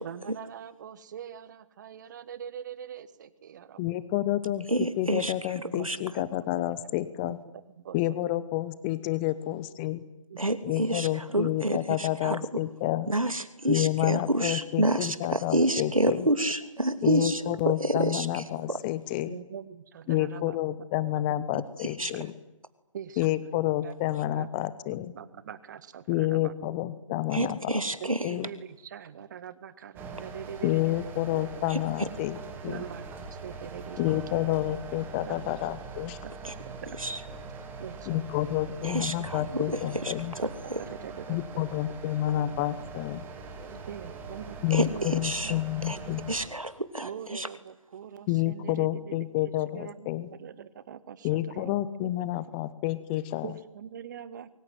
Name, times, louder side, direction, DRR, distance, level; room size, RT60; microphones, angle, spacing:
voice 1, 0.0-3.8 5.6-6.0 6.6-8.2 10.3-11.2 17.0-17.1 19.3-20.8 21.1-21.2 22.1-22.2 22.9-23.5 23.8-23.9 24.3-26.5 28.0-30.9 31.3-31.4 32.6-34.2 34.6-34.7 35.2-35.5 36.2-36.3 36.7-37.0 37.8-38.4 38.7-38.8 39.2-39.3 40.0-40.1 40.4-40.5 40.8-41.7 43.9-45.6 45.9-46.2 47.0-49.2 49.4-50.1 50.4-51.8 53.4-54.5, right 8 dB, 35° right, 15 dB, 1.7 m, -43 dB
voice 2, 3.8-7.4 7.9-10.0 10.6-13.1 13.7-16.3 17.0-19.4 20.1-22.3 23.2-25.1 26.1-27.8 28.2-28.5 30.6-32.4 32.6-32.8 34.0-36.2 38.1-40.3 41.3-43.2 44.6-46.3 48.3-50.3 51.2-53.5, left 15 dB, 20° left, 16 dB, 1.1 m, -29 dB
voice 3, 4.7-5.3 5.8-6.0 10.4-12.4 13.1-18.8 22.0-22.1 27.3-28.3 31.7-31.8 36.4-36.5 37.0-37.2 38.8-40.8 43.6-43.8 44.7-45.5 45.8-46.0 46.3-47.5, right 1 dB, 80° right, 11 dB, 2.7 m, -29 dB
sound 1, 29.9-46.5, right 4 dB, 10° right, 2.8 m, -42 dB
25.0 x 24.0 x 9.4 m, 0.92 s
figure-of-eight pair, 140°, 17 cm